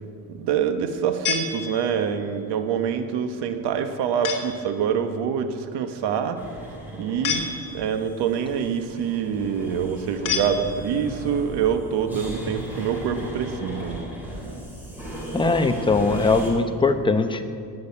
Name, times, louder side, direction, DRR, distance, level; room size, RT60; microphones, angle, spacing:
voice 1, 0.3-6.4 6.9-7.5 7.7-14.1, right 7 dB, 80° right, 8 dB, 1.3 m, -25 dB
sound 1, 1.3-2.2 4.2-4.7 7.2-8.1 10.3-11.1, left 6 dB, 50° left, 2.0 m, -30 dB
sound 2, 6.3-16.5, equal, 5° right, 4.2 m, -36 dB
voice 2, 15.3-17.4, left 3 dB, 10° left, 7 dB, 0.9 m, -21 dB
19.0 x 6.7 x 8.6 m, 2.3 s
cardioid pair, 140°, 40 cm